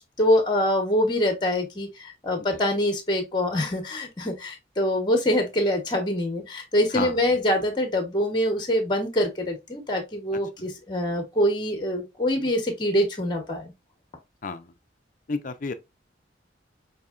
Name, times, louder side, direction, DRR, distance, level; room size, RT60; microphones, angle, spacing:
voice 1, 0.2-13.7, left 1 dB, 25° left, 0.9 m, -24 dB
voice 2, 6.9-7.4 14.4-14.7 15.3-15.7, left 4 dB, 45° left, 0.5 m, -31 dB
5.5 x 2.7 x 2.4 m
head